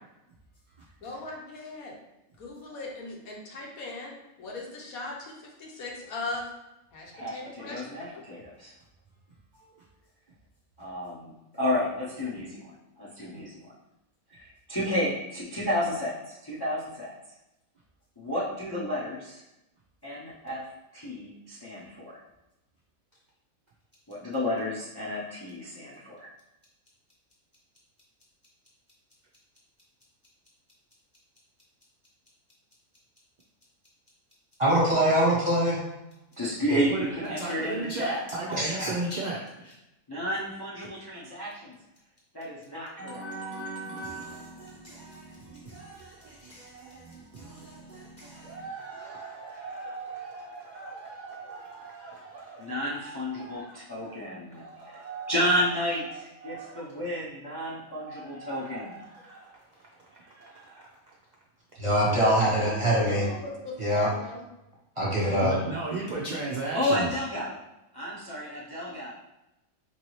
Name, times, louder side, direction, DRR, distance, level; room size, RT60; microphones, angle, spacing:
voice 1, 1.0-1.9 2.4-4.1 4.4-6.5 6.9-7.8 62.1-64.4, left 2 dB, 80° left, -2 dB, 1.3 m, -38 dB
voice 2, 7.1-8.7 10.8-13.7 14.3-17.1 18.2-19.4 20.0-20.7 20.9-22.2 24.1-26.3 36.4-38.2 40.1-41.8 42.3-43.3 52.6-55.0 55.3-59.0 66.7-67.6 67.9-69.1, left 1 dB, 25° left, -7 dB, 0.5 m, -31 dB
voice 3, 34.6-35.8 38.5-38.9 61.8-63.2 63.8-64.1 65.0-65.5, right 1 dB, 25° right, -6 dB, 1.1 m, -23 dB
voice 4, 36.7-39.7 43.0-55.8 56.1-56.9 57.9-59.8 60.1-61.0 65.4-67.1, right 3 dB, 65° right, -3 dB, 0.4 m, -38 dB
4.5 x 2.7 x 3.1 m, 0.92 s
omnidirectional pair, 1.5 m